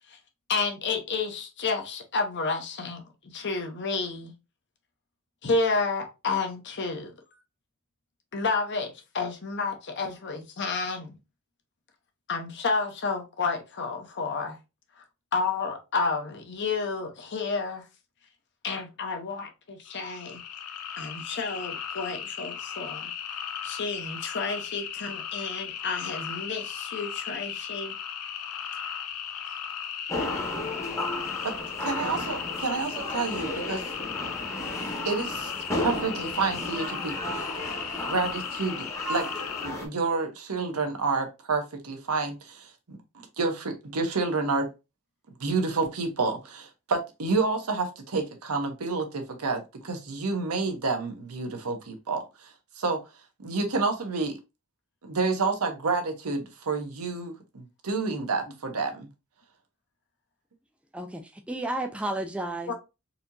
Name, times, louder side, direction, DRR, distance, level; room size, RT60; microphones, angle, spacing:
voice 1, 0.5-3.0 3.3-4.3 5.4-7.1 8.3-11.1 12.3-14.6 15.3-17.8 18.6-20.4 21.0-23.1 23.6-28.0 62.7-62.8, left 4 dB, 50° left, 0.8 m, -30 dB
sound 1, 19.9-39.7, left 8 dB, 90° left, 0.6 m, -36 dB
sound 2, 30.1-39.9, left 1 dB, 15° left, 0.9 m, -34 dB
voice 2, 31.8-33.8 35.0-35.5 35.8-37.2 38.1-39.3 39.6-43.0 43.4-44.7 45.4-53.0 53.4-54.4 55.0-59.1, right 4 dB, 80° right, 0.9 m, -29 dB
voice 3, 60.9-62.7, right 1 dB, 5° right, 0.4 m, -32 dB
4.2 x 2.8 x 2.6 m
head